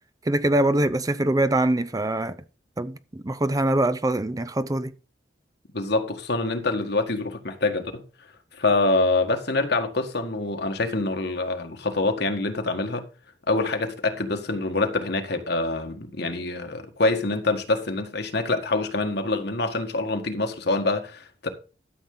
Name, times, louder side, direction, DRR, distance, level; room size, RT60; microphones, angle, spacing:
voice 1, 0.2-2.4 2.8-4.9, right 1 dB, 20° right, 0.6 m, -23 dB
voice 2, 5.7-8.0 8.6-13.0 13.5-21.5, left 2 dB, 65° left, 1.7 m, -25 dB
13.0 x 7.2 x 3.9 m
head